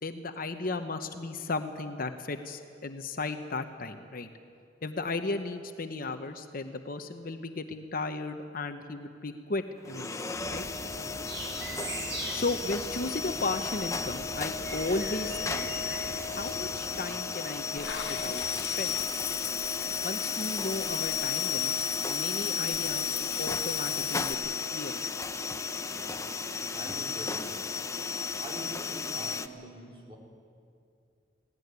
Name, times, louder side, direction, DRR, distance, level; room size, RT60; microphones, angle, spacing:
voice 1, 0.0-4.3 4.8-10.2 10.5-10.6 12.3-15.7 16.4-19.0 20.0-21.7 22.1-25.1, left 3 dB, 50° left, 8 dB, 0.9 m, -35 dB
sound 1, 9.8-29.5, left 5 dB, 15° left, 0.7 m, -34 dB
sound 2, 10.3-17.0, right 2 dB, 70° right, 6.1 m, -41 dB
Water / Bathtub (filling or washing), 17.8-24.3, left 10 dB, 65° left, 1.3 m, -38 dB
voice 2, 25.9-27.7 28.4-30.2, right 1 dB, 25° right, -2 dB, 4.1 m, -45 dB
18.0 x 17.5 x 9.5 m, 2.4 s
head